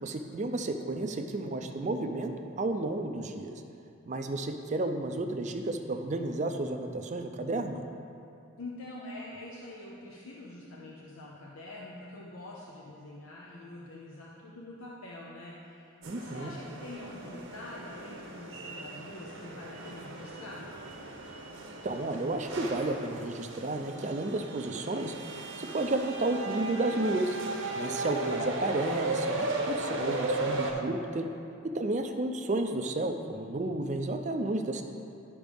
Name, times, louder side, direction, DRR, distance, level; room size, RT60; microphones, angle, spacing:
voice 1, 0.0-3.6 4.1-7.8 16.1-16.5 21.8-27.4 27.8-31.3 31.6-34.8, right 2 dB, 35° right, 6 dB, 0.4 m, -32 dB
voice 2, 8.6-20.6, left 2 dB, 85° left, -4 dB, 0.8 m, -45 dB
sound 1, 16.0-30.7, right 2 dB, 70° right, 0.9 m, -36 dB
12.0 x 5.0 x 3.5 m, 2.7 s
head